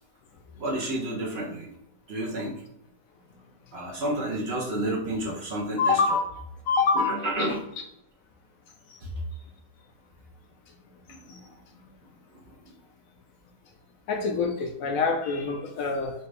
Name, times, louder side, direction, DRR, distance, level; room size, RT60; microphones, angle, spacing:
voice 1, 0.6-1.7 2.1-2.6 3.7-6.2 6.9-7.6 9.0-9.1 11.1-11.5, right 1 dB, 50° right, -3 dB, 0.9 m, -31 dB
voice 2, 5.8-6.3 6.7-7.5 11.3-11.4 14.1-16.1, left 4 dB, 70° left, 4 dB, 1.0 m, -25 dB
4.3 x 2.5 x 3.2 m, 0.79 s
omnidirectional pair, 1.6 m